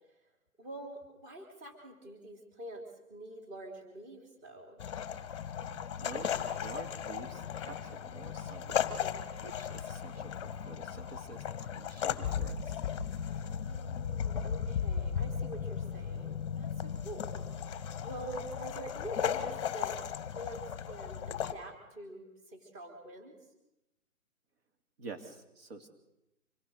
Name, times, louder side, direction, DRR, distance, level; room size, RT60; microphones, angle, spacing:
voice 1, 0.6-4.8 8.9-9.2 13.2-17.4 18.0-20.0 20.3-23.4, right 1 dB, 15° right, 2 dB, 3.5 m, -46 dB
sound 1, 4.8-21.5, left 8 dB, 20° left, 1.4 m, -36 dB
voice 2, 6.0-8.8 9.4-11.4 11.7-12.8 25.0-25.9, right 4 dB, 45° right, 5 dB, 3.0 m, -48 dB
26.5 x 21.5 x 6.5 m, 0.93 s
hypercardioid pair, 160°, 43 cm